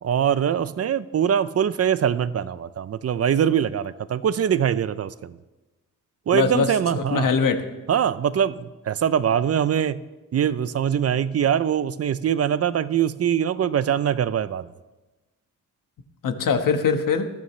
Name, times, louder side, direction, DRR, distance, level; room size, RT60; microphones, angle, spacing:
voice 1, 0.0-5.4 6.3-7.3 7.9-10.0 10.3-14.7, right 9 dB, 50° right, 15 dB, 0.5 m, -23 dB
voice 2, 6.3-7.6 16.2-17.3, left 5 dB, 90° left, 7 dB, 1.3 m, -22 dB
19.5 x 14.0 x 3.2 m, 1.1 s
wide cardioid pair, 155°, 32 cm